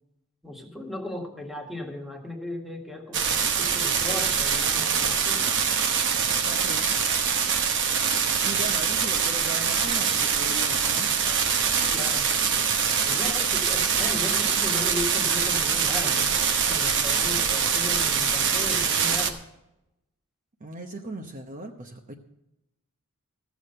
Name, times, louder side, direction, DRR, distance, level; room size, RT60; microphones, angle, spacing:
voice 1, 0.4-5.5 11.9-12.3 13.0-16.4 16.7-19.4, left 1 dB, ahead, 2 dB, 1.6 m, -36 dB
sound 1, 3.1-19.3, right 6 dB, 55° right, 1.1 m, -24 dB
voice 2, 6.4-7.0 8.4-11.2 20.6-22.1, right 2 dB, 35° right, 3 dB, 0.9 m, -38 dB
14.5 x 7.1 x 6.6 m, 0.90 s
head